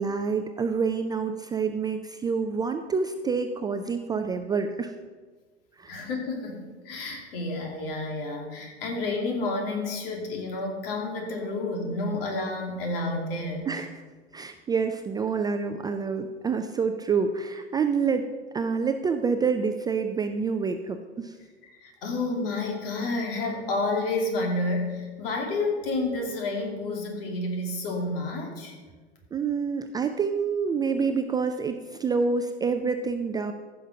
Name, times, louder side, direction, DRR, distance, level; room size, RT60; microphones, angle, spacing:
voice 1, 0.0-4.9 5.8-6.0 13.7-14.0 14.3-18.3 18.5-21.4 29.3-33.5, right 5 dB, 10° right, 7 dB, 0.4 m, -27 dB
voice 2, 5.9-6.6 6.8-13.6 21.6-28.8, left 2 dB, 60° left, 2 dB, 2.7 m, -30 dB
15.0 x 5.9 x 5.1 m, 1.4 s
figure-of-eight pair, 90°, 32 cm